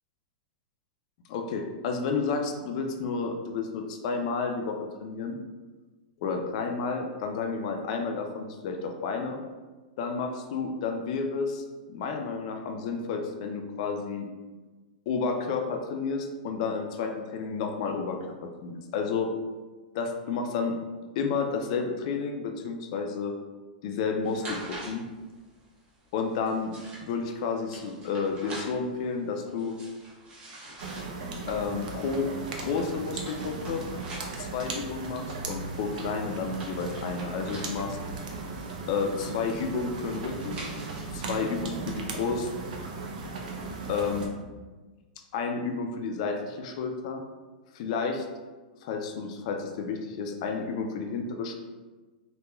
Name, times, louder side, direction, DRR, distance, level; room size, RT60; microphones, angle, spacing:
voice 1, 1.3-5.4 6.2-9.4 10.0-14.3 15.1-19.3 19.9-20.7 21.2-23.3 23.8-25.0 26.1-26.7 27.0-29.8 31.5-32.3 32.6-33.9 34.4-38.0 38.9-40.7 41.1-42.5 43.9-44.3 45.3-47.2 47.7-48.3 48.8-51.5, left 5 dB, 50° left, 4 dB, 0.3 m, -31 dB
sound 1, 24.2-43.2, right 1 dB, 25° right, 0.8 m, -47 dB
sound 2, 30.8-44.3, right 4 dB, 70° right, 0.5 m, -37 dB
2.9 x 2.2 x 2.3 m, 1.3 s
hypercardioid pair, 145°, 5 cm